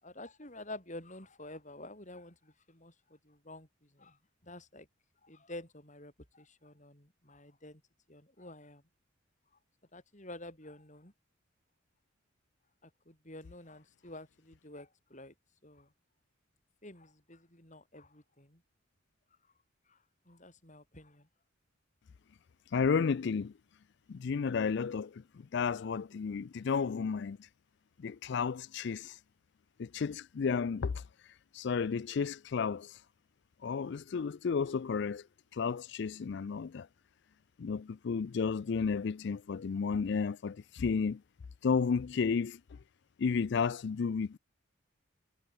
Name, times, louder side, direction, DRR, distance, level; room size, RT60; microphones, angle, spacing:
voice 1, 0.0-4.9 5.2-7.8 8.1-8.8 9.9-11.1 12.8-15.3 15.6-15.9 16.8-18.6 19.9-20.0 20.3-21.3, left 1 dB, 35° left, 6.3 m, -49 dB
voice 2, 22.7-23.5 24.1-27.5 28.0-29.2 29.8-33.0 33.6-35.3 35.5-36.9 37.6-41.2 41.6-42.8 43.2-44.4, left 5 dB, 55° left, 0.4 m, -32 dB
head